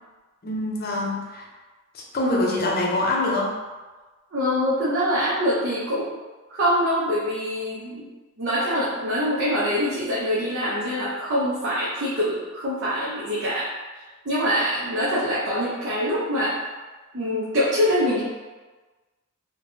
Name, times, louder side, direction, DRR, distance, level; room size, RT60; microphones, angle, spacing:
voice 1, 0.4-1.5 1.9-3.5, left 2 dB, 45° left, -2 dB, 0.5 m, -24 dB
voice 2, 4.3-6.1 6.5-8.0 8.4-16.6 17.1-18.2, equal, 55° right, -9 dB, 0.6 m, -24 dB
3.2 x 2.1 x 2.5 m, 1.3 s
head